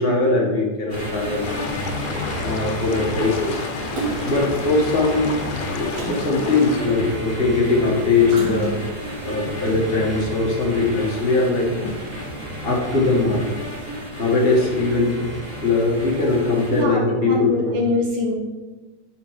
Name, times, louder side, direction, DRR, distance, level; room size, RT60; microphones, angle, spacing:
voice 1, 0.0-1.5 2.4-3.6 4.2-8.8 9.2-11.9 12.6-13.5 14.2-15.2 15.6-17.8, left 3 dB, 45° left, -3 dB, 0.7 m, -21 dB
sound 1, 0.9-16.8, equal, 25° left, 1.4 m, -31 dB
sound 2, 1.4-6.8, left 10 dB, 90° left, 2.1 m, -33 dB
Splash splatter, 4.0-4.6 5.9-7.1 8.3-9.1 9.7-9.8, right 2 dB, 65° right, 2.8 m, -31 dB
voice 2, 16.7-18.3, left 1 dB, 85° right, -2 dB, 1.0 m, -23 dB
9.4 x 5.2 x 4.7 m, 1.3 s
omnidirectional pair, 3.6 m